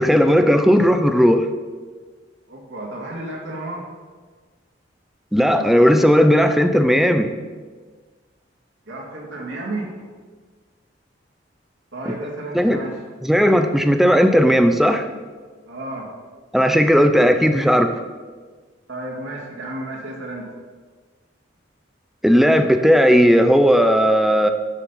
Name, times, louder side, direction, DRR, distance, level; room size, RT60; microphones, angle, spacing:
voice 1, 0.0-1.4 5.3-7.3 12.5-12.8 13.2-15.1 16.5-17.9 22.2-24.5, equal, ahead, 7 dB, 0.5 m, -15 dB
voice 2, 2.5-3.9 8.9-10.1 11.9-12.9 15.7-16.1 18.9-20.5, right 1 dB, 80° right, -2 dB, 2.0 m, -32 dB
11.5 x 4.3 x 5.5 m, 1.5 s
head